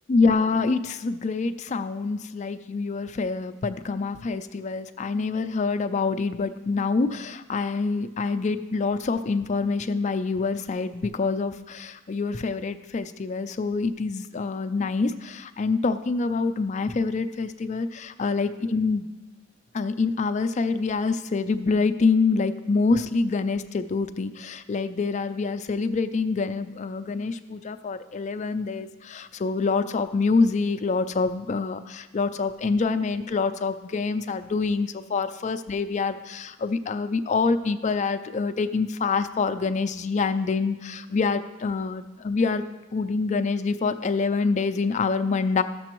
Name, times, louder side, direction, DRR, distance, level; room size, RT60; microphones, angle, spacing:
voice 1, 0.1-19.1 19.7-42.6 42.9-45.6, left 4 dB, 35° left, 10 dB, 0.4 m, -26 dB
12.5 x 6.9 x 3.0 m, 1.2 s
head